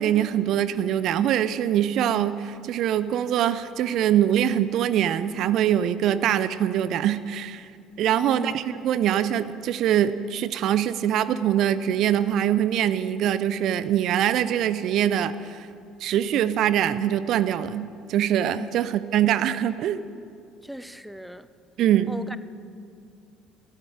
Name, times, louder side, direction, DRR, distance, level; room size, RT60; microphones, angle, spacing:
voice 1, 0.0-7.7 8.0-15.7 16.0-20.0 21.8-22.2, right 10 dB, 50° right, 14 dB, 0.4 m, -23 dB
voice 2, 20.6-21.5 22.1-22.4, equal, ahead, 14 dB, 0.5 m, -36 dB
13.0 x 12.5 x 5.0 m, 2.3 s
figure-of-eight pair, 55°, 0 cm